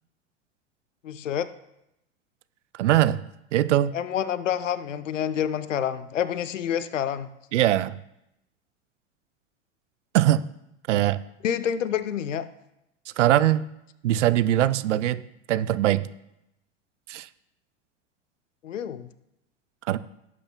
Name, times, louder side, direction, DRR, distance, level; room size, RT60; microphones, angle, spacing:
voice 1, 1.0-1.5 3.9-7.3 11.4-12.5 18.6-19.1, left 9 dB, 80° left, 14 dB, 0.7 m, -28 dB
voice 2, 2.8-3.2 3.5-4.0 7.5-8.0 10.1-10.4 10.9-11.2 13.2-13.6 14.0-15.2 15.5-16.1 17.1-17.3 19.9-20.0, right 13 dB, 70° right, 15 dB, 0.6 m, -21 dB
17.0 x 8.5 x 2.2 m, 0.84 s
hypercardioid pair, 90°, 37 cm